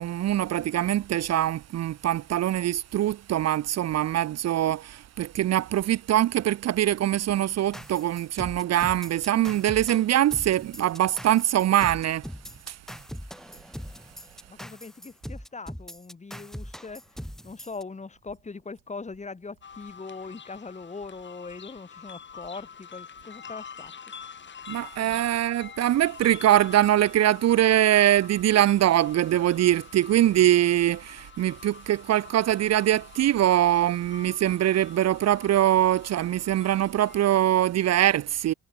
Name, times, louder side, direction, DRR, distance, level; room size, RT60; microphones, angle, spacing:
voice 1, 0.0-12.2 12.7-12.8 24.7-38.5, right 12 dB, 60° right, 0.6 m, -23 dB
sound 1, 7.7-17.8, equal, ahead, 6.7 m, -41 dB
voice 2, 14.5-24.1 25.0-25.4, left 4 dB, 25° left, 2.3 m, -41 dB
sound 2, 19.6-37.3, left 7 dB, 40° left, 1.4 m, -46 dB
cardioid pair, 90°, 30 cm